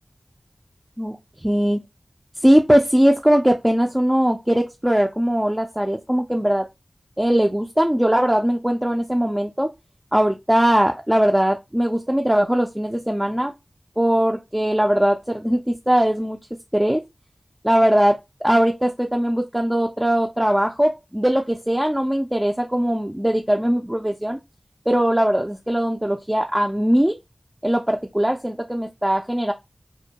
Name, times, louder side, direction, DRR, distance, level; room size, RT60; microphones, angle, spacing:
voice 1, 1.0-1.8 2.4-6.7 7.2-9.7 10.1-13.5 14.0-16.4 16.7-17.0 17.6-24.4 24.9-27.1 27.6-29.5, equal, 10° right, 0.3 m, -20 dB
2.2 x 2.2 x 2.7 m
wide cardioid pair, 45°, 0 cm